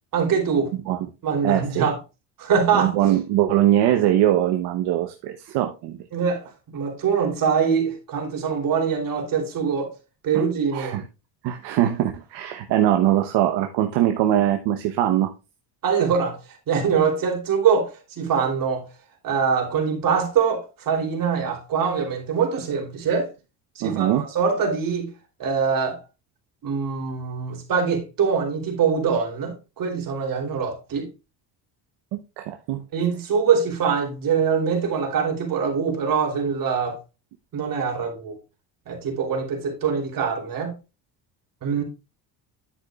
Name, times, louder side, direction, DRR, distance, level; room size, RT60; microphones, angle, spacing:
voice 1, 0.1-0.7 1.2-2.0 2.4-2.9 6.1-9.9 10.2-11.0 15.8-16.4 16.7-18.8 19.2-23.3 23.7-25.1 25.4-26.0 26.6-31.1 32.9-37.0 37.5-38.3 38.9-40.7 41.6-41.8, right 6 dB, 55° right, 3.2 m, -23 dB
voice 2, 1.4-1.9 2.7-6.0 10.3-10.4 10.7-11.0 11.4-15.3 23.8-24.2 32.4-32.8, right 12 dB, 75° right, 1.0 m, -21 dB
9.9 x 8.3 x 2.3 m
cardioid pair, 105°, 41 cm